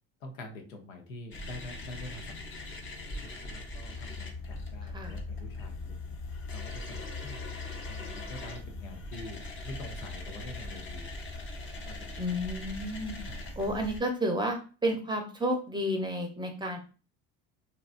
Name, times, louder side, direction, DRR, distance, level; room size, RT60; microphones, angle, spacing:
voice 1, 0.2-2.5 3.2-6.2 6.5-11.1 11.7-12.4 13.3-13.6, left 1 dB, 85° left, 4 dB, 0.7 m, -46 dB
sound 1, 1.3-14.0, left 2 dB, 30° left, 0.7 m, -40 dB
voice 2, 12.2-16.8, equal, 10° right, 3 dB, 0.6 m, -31 dB
2.8 x 2.3 x 2.4 m, 0.36 s
hypercardioid pair, 70°, 38 cm